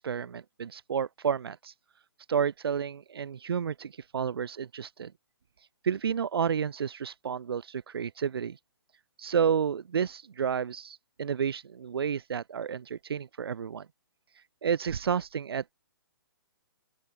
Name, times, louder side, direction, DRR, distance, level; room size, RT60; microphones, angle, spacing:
voice 1, 0.0-1.7 2.3-5.1 5.8-8.6 9.2-13.9 14.3-15.7, right 7 dB, 85° right, 0.7 m, -31 dB
open air
hypercardioid pair, 180°, 12 cm